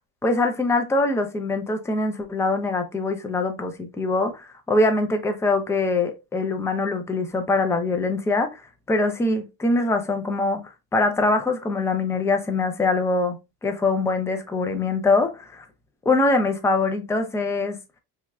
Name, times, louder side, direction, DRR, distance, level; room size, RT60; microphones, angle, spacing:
voice 1, 0.2-8.6 8.9-10.6 10.9-13.4 13.6-15.6 16.1-17.8, left 3 dB, 10° left, 0.4 m, -23 dB
3.4 x 3.1 x 2.2 m
cardioid pair, 130°, 33 cm